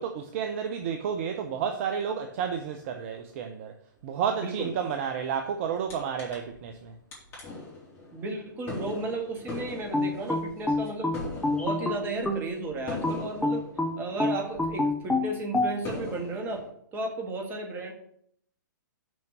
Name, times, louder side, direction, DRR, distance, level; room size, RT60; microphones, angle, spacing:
voice 1, 0.0-3.8 4.0-6.9, right 7 dB, 40° right, 0.7 m, -31 dB
voice 2, 4.4-4.7 8.1-11.1 11.5-13.6 14.0-17.9, right 2 dB, 20° right, 1.7 m, -34 dB
sound 1, 5.9-6.0 6.2-6.8 7.1-15.0 15.4-15.5 15.8-16.7, left 3 dB, 25° left, 3.8 m, -41 dB
sound 2, 9.9-12.5 13.0-15.7, left 2 dB, 5° left, 0.9 m, -27 dB
6.3 x 5.9 x 6.6 m
figure-of-eight pair, 115°, 11 cm